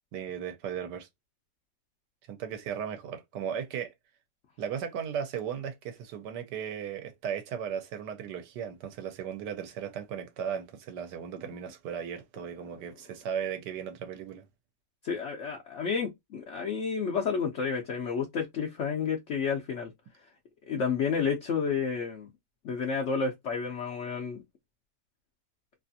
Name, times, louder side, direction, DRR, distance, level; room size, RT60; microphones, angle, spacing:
voice 1, 0.1-1.1 2.3-3.9 4.6-14.5, right 8 dB, 75° right, 1.3 m, -36 dB
voice 2, 15.0-19.9 20.7-22.3 22.6-24.4, left 6 dB, 75° left, 0.6 m, -30 dB
3.0 x 2.4 x 2.5 m
omnidirectional pair, 1.9 m